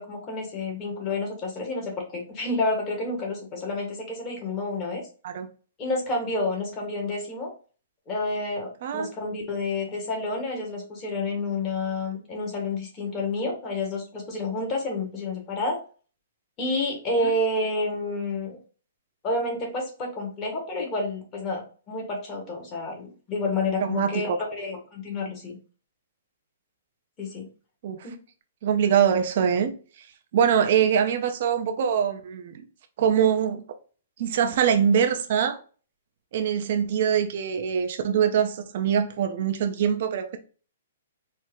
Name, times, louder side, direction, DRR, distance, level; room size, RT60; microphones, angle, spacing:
voice 1, 0.0-5.0 5.8-7.5 8.1-15.8 16.6-18.6 19.2-25.6 27.2-27.5 28.0-28.2, left 2 dB, 25° left, 1.5 m, -29 dB
voice 2, 8.8-9.1 17.2-17.3 23.8-24.4 27.8-28.1 28.6-30.1 30.3-32.6 33.0-33.6 34.2-35.6 36.3-40.4, right 8 dB, 55° right, 0.7 m, -23 dB
4.4 x 2.1 x 3.7 m
hypercardioid pair, 145°, 0 cm